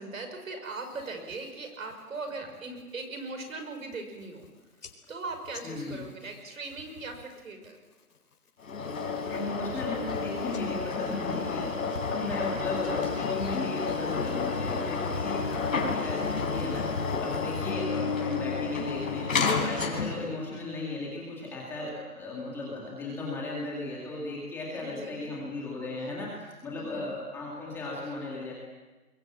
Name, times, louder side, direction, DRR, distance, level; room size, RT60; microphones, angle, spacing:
voice 1, 0.0-4.5 5.1-7.8 12.5-12.6 13.6-13.7 17.8-18.1 24.7-25.4 26.7-27.1, right 3 dB, 60° right, 6 dB, 5.8 m, -40 dB
sound 1, 0.7-1.5 1.9-2.3 2.7-3.0 3.5-3.6 3.8-4.5 4.8-7.4 7.6-8.2 8.7-17.7, left 4 dB, 80° left, 4.3 m, -42 dB
voice 2, 5.6-6.0 9.3-28.5, left 2 dB, 5° left, -5 dB, 2.2 m, -36 dB
sound 2, 8.6-20.3, left 4 dB, 60° left, 4.5 m, -31 dB
26.0 x 22.5 x 7.6 m, 1.2 s
hypercardioid pair, 170°, 45 cm